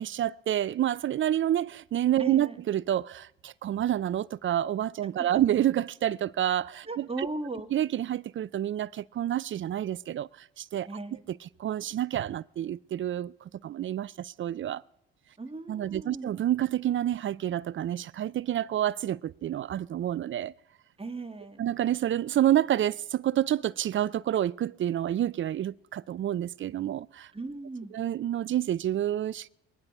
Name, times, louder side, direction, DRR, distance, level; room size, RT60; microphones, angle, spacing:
voice 1, 0.0-7.1 7.7-10.9 11.6-13.3 13.6-14.8 15.7-20.5 21.6-27.3 27.9-29.5, right 11 dB, 40° right, 0.5 m, -28 dB
voice 2, 2.2-2.6 5.2-5.3 6.9-7.7 10.9-11.2 15.4-16.3 21.0-21.6 27.3-28.0, right 2 dB, 20° right, 1.9 m, -37 dB
23.0 x 9.7 x 4.8 m
hypercardioid pair, 55°, 31 cm